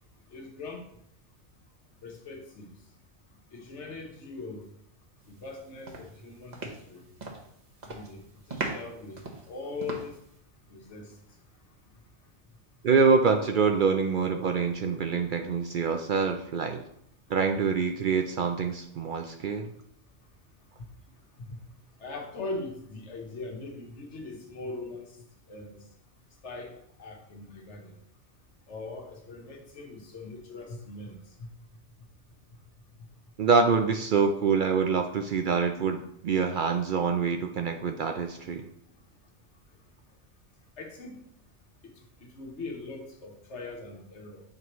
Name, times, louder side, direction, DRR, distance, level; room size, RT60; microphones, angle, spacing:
voice 1, 0.3-0.9 2.0-2.7 3.5-4.6 5.4-7.0 7.8-10.1 10.7-11.1 21.5-21.6 22.0-25.1 25.5-25.8 26.4-28.0 28.7-31.2 40.8-41.3 41.8-41.9 42.2-44.4, left 3 dB, 80° left, 1 dB, 1.4 m, -41 dB
sound 1, 5.3-5.6 5.9-7.5 7.8-8.2 8.5-10.3, right 3 dB, 40° right, 1.0 m, -38 dB
voice 2, 12.8-16.8 17.3-19.7 33.4-38.7, right 5 dB, 60° right, 5 dB, 0.6 m, -25 dB
7.5 x 4.7 x 3.0 m, 0.70 s
omnidirectional pair, 1.2 m